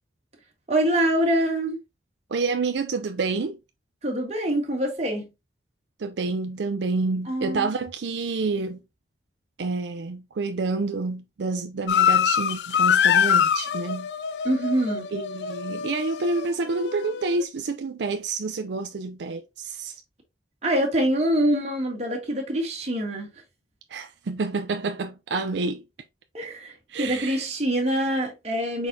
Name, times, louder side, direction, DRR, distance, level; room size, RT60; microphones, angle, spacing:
voice 1, 0.7-1.8 4.0-5.3 7.3-7.7 14.4-15.1 20.6-23.3 26.3-28.9, right 1 dB, 35° right, 1.6 m, -25 dB
voice 2, 2.3-3.6 6.0-8.8 9.6-14.1 15.1-20.0 23.9-25.8 26.9-27.5, right 3 dB, 80° right, 0.5 m, -28 dB
sound 1, 11.9-17.4, left 8 dB, 70° left, 0.3 m, -24 dB
4.9 x 4.1 x 2.7 m
head